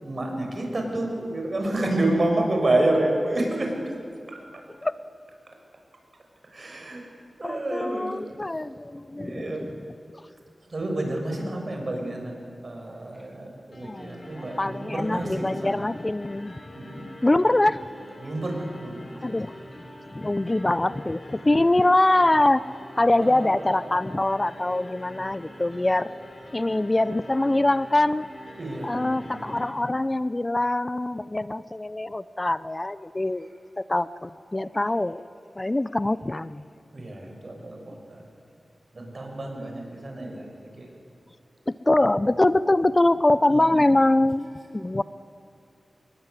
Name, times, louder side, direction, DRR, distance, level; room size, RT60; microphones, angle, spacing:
voice 1, 0.0-3.7 4.3-4.4 6.5-7.0 7.4-8.2 9.2-9.7 10.7-12.3 12.6-15.8 16.8-17.1 18.2-19.6 23.2-24.0 28.6-29.4 36.9-38.2 38.9-40.5 40.8-40.9 43.5-43.9, right 1 dB, 50° right, 2 dB, 7.0 m, -29 dB
voice 2, 7.4-9.7 13.8-16.6 17.2-17.8 19.2-19.5 20.1-22.6 23.0-26.1 26.5-28.3 28.8-33.5 33.8-35.2 35.6-36.6 41.7-45.0, left 2 dB, 25° left, 15 dB, 0.7 m, -23 dB
sound 1, 13.7-29.7, left 1 dB, 50° left, 7.6 m, -44 dB
26.0 x 21.5 x 9.8 m, 2.5 s
wide cardioid pair, 65°, 0 cm